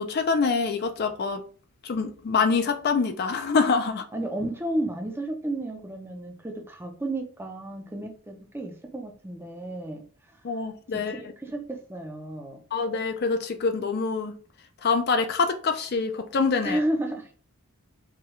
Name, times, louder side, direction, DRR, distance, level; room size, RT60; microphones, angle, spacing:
voice 1, 0.0-1.4 1.8-4.0 10.4-11.1 12.7-14.3 14.8-16.8, left 4 dB, 45° left, 0.4 m, -25 dB
voice 2, 4.1-10.0 10.9-12.6 16.6-17.3, right 1 dB, 10° right, 0.5 m, -32 dB
4.7 x 2.3 x 3.1 m
head